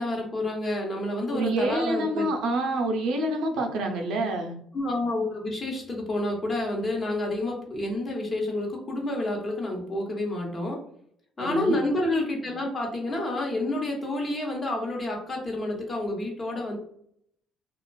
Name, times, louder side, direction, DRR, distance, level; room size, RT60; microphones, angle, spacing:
voice 1, 0.0-2.3 4.7-10.8 11.4-16.8, left 1 dB, 35° left, 0 dB, 0.9 m, -29 dB
voice 2, 1.3-4.5 11.4-11.8, right 1 dB, 75° right, 2 dB, 0.5 m, -27 dB
2.4 x 2.3 x 2.2 m, 0.66 s
supercardioid pair, 80°, 0 cm